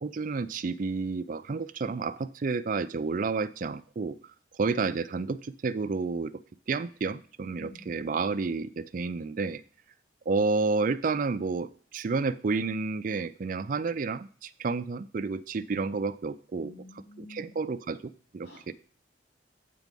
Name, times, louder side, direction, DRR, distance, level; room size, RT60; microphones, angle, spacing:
voice 1, 0.0-4.2 4.6-6.4 6.7-9.6 10.3-16.7 17.2-18.7, right 4 dB, 45° right, 14 dB, 0.4 m, -30 dB
voice 2, 7.6-7.9 16.6-17.6 18.4-18.7, left 1 dB, 75° left, -1 dB, 2.8 m, -48 dB
8.3 x 4.7 x 5.2 m, 0.42 s
head